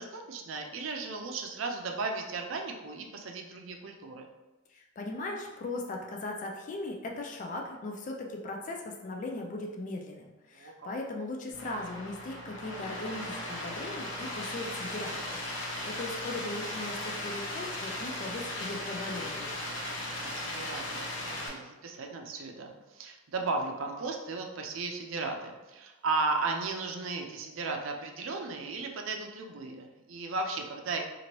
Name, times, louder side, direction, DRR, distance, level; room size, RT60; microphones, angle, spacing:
voice 1, 0.0-4.3 10.5-10.9 19.8-31.0, right 3 dB, 80° right, 3 dB, 0.5 m, -35 dB
voice 2, 4.7-19.6, left 2 dB, 40° left, 1 dB, 0.3 m, -38 dB
sound 1, 11.5-21.5, left 1 dB, 70° left, 0.7 m, -37 dB
2.9 x 2.5 x 2.9 m, 1.1 s
head